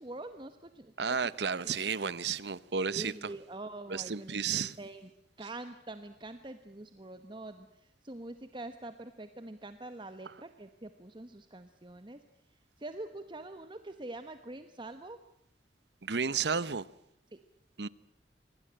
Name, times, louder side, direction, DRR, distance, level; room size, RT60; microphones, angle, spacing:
voice 1, 0.0-1.2 1.6-1.8 2.9-5.1 5.4-12.2 12.8-15.2 17.3-17.4, right 2 dB, 25° right, 1.1 m, -45 dB
voice 2, 1.0-3.1 3.9-4.8 16.0-16.9 17.8-17.9, right 6 dB, 75° right, 0.9 m, -32 dB
26.0 x 19.0 x 8.9 m
head